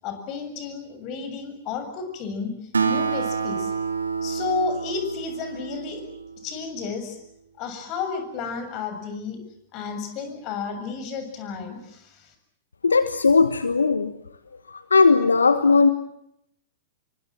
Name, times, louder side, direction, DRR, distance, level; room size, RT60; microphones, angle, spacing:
voice 1, 0.0-2.5 2.9-3.7 4.2-6.0 6.4-7.2 7.6-9.4 9.7-12.3, left 5 dB, 35° left, 8 dB, 7.1 m, -32 dB
Acoustic guitar, 2.7-6.5, right 5 dB, 80° right, 3.0 m, -28 dB
voice 2, 12.8-14.1 14.7-15.9, left 4 dB, 80° left, 11 dB, 1.4 m, -18 dB
28.0 x 24.0 x 7.6 m, 0.77 s
figure-of-eight pair, 105°, 0 cm